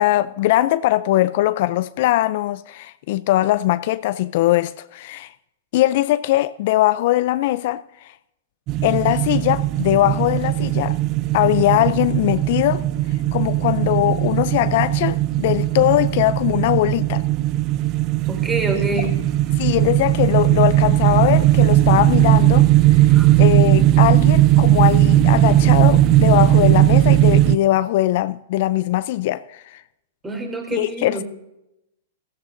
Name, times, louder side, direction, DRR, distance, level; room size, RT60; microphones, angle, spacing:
voice 1, 0.0-5.3 5.7-8.1 8.8-11.0 11.3-12.8 13.3-17.2 19.6-22.7 23.0-23.1 23.4-29.8 30.7-31.2, left 15 dB, 55° left, 0.4 m, -20 dB
sound 1, 8.7-27.6, right 14 dB, 35° right, 0.5 m, -17 dB
voice 2, 18.3-19.2 23.1-23.3 30.2-31.2, right 2 dB, 15° right, 3.3 m, -26 dB
16.0 x 14.5 x 2.6 m
hypercardioid pair, 130°, 0 cm